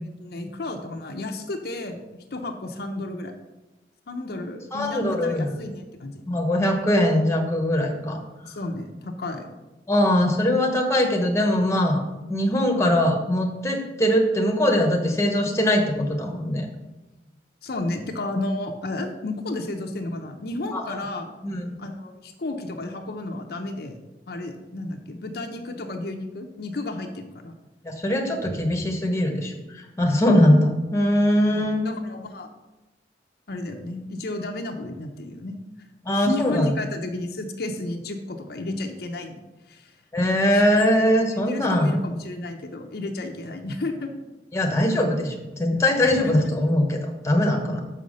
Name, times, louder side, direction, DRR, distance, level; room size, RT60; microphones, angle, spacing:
voice 1, 0.0-2.0 2.3-3.3 4.1-6.2 8.4-9.5 17.6-21.3 21.8-23.9 24.3-27.6 30.3-30.5 31.5-32.5 33.5-35.6 36.1-39.4 39.7-39.9 40.5-40.6 41.5-44.1 46.2-46.4, left 2 dB, 60° left, 4 dB, 0.7 m, -32 dB
voice 2, 4.7-5.6 6.3-8.2 9.9-12.0 12.3-16.6 20.7-21.0 21.4-21.7 27.8-31.8 36.0-36.7 40.1-41.9 44.5-47.8, left 1 dB, 15° left, 3 dB, 0.9 m, -21 dB
5.7 x 5.5 x 6.3 m, 1.1 s
head